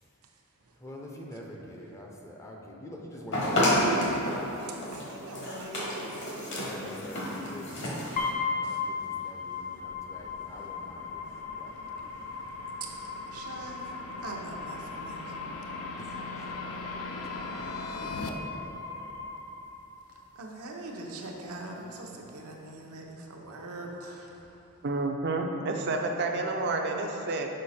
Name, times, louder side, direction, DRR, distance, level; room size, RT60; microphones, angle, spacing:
voice 1, 0.8-3.9 6.6-12.0 16.0-16.5 17.2-17.3 17.8-19.1, left 1 dB, 15° left, -1 dB, 0.5 m, -45 dB
sound 1, 3.3-8.3, equal, 55° left, 1.3 m, -30 dB
voice 2, 4.9-6.6 8.6-8.8 11.8-12.9 13.3-15.4 20.1-24.4, right 2 dB, 80° right, 0 dB, 0.8 m, -43 dB
sound 2, 7.1-18.3, left 3 dB, 75° left, 0.5 m, -43 dB
sound 3, 8.2-20.2, left 4 dB, 35° left, 0.8 m, -37 dB
voice 3, 24.8-27.5, right 2 dB, 50° right, 3 dB, 0.5 m, -29 dB
6.4 x 5.0 x 4.2 m, 2.9 s
head